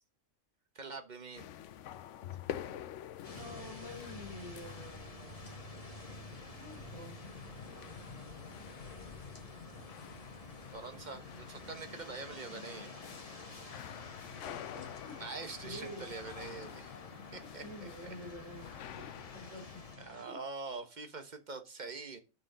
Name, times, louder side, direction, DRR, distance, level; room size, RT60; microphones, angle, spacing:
voice 1, 0.7-1.5 10.7-12.9 15.2-16.9 17.3-17.6 18.0-18.1 20.0-22.2, right 4 dB, 40° right, 1.2 m, -44 dB
sound 1, 1.4-20.0, left 10 dB, 70° left, 0.9 m, -49 dB
sound 2, 3.2-20.3, left 3 dB, 30° left, 1.5 m, -49 dB
voice 2, 3.3-5.6 6.5-7.3 7.7-8.5 13.9-15.2 15.6-16.1 17.3-20.0 20.3-20.4, left 1 dB, 70° right, 4.0 m, -49 dB
7.5 x 6.3 x 5.4 m
omnidirectional pair, 1.3 m